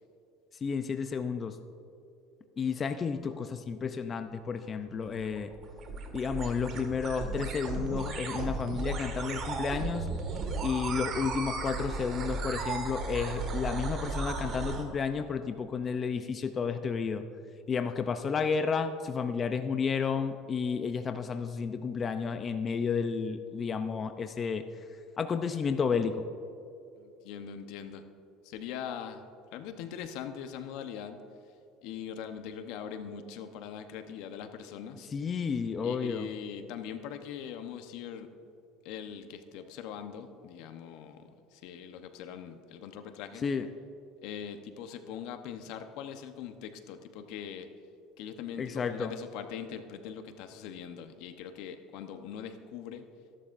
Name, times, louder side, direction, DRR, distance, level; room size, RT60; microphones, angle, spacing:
voice 1, 0.6-1.6 2.6-5.5 6.1-10.1 10.6-17.2 17.7-24.6 25.2-26.2 35.1-36.3 43.4-43.7 48.6-49.1, left 6 dB, 30° left, 8 dB, 0.6 m, -31 dB
sound 1, 5.0-14.8, right 3 dB, 45° right, 1.9 m, -35 dB
voice 2, 27.0-28.0 28.4-29.2 29.5-31.2 31.8-35.1 35.8-38.3 38.8-43.4 44.2-47.7 48.2-53.1, left 8 dB, 70° left, 7 dB, 1.0 m, -41 dB
26.5 x 11.5 x 2.6 m, 2.7 s
supercardioid pair, 110°, 0 cm